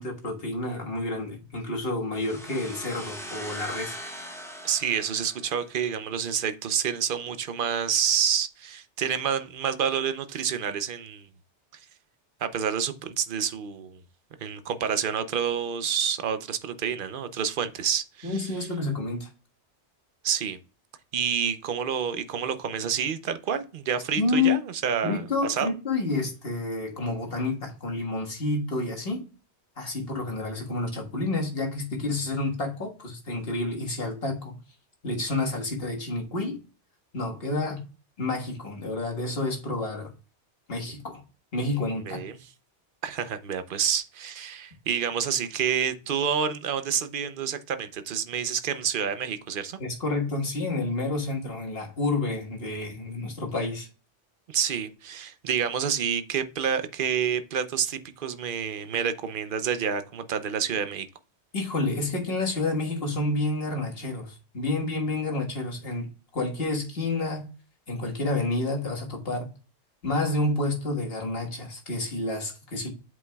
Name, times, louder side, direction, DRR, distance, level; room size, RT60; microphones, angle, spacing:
voice 1, 0.0-4.0 18.2-19.3 24.2-24.6 25.0-29.3 29.8-34.6 35.0-36.6 37.1-37.8 38.2-40.1 40.7-41.2 41.5-42.2 49.8-53.9 61.5-67.5 67.9-69.5 70.0-72.9, left 2 dB, 55° left, 1.8 m, -29 dB
sound 1, 2.2-5.9, equal, 5° left, 1.1 m, -40 dB
voice 2, 4.6-11.3 12.4-14.0 14.4-18.3 20.2-20.6 21.1-25.7 42.1-42.4 43.0-49.8 54.5-61.1, right 7 dB, 55° right, 0.8 m, -28 dB
8.0 x 5.3 x 2.3 m
omnidirectional pair, 1.2 m